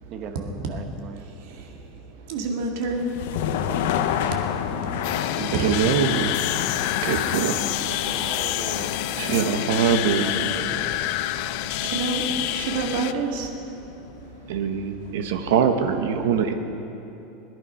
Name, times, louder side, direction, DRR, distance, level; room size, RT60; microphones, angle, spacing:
voice 1, 0.1-1.3 3.5-3.9 7.0-10.8, right 5 dB, 35° right, 6 dB, 1.0 m, -39 dB
voice 2, 2.3-3.1 5.5-5.6 11.8-12.2 12.5-13.5, right 3 dB, 60° right, 2 dB, 2.0 m, -27 dB
sound 1, 2.9-14.8, left 9 dB, 70° left, 0.9 m, -30 dB
sound 2, 5.0-13.1, left 14 dB, 50° left, 0.4 m, -28 dB
voice 3, 5.4-6.3 7.0-7.6 9.2-10.3 14.5-16.5, right 7 dB, 80° right, 6 dB, 1.2 m, -23 dB
21.0 x 11.0 x 5.6 m, 2.9 s
supercardioid pair, 170°, 0 cm